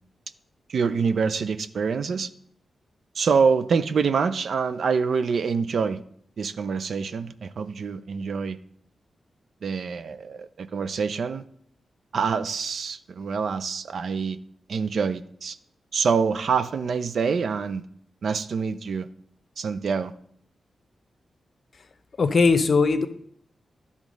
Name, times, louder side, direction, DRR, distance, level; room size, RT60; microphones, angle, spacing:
voice 1, 0.7-2.3 3.2-6.0 6.4-8.6 9.6-11.4 12.1-14.4 14.7-15.6 15.9-17.8 18.2-19.1 19.6-20.1, right 5 dB, 70° right, 12 dB, 0.4 m, -26 dB
voice 2, 22.2-23.1, left 4 dB, 55° left, 9 dB, 0.7 m, -19 dB
10.5 x 3.6 x 5.1 m, 0.66 s
cardioid pair, 65°, 0 cm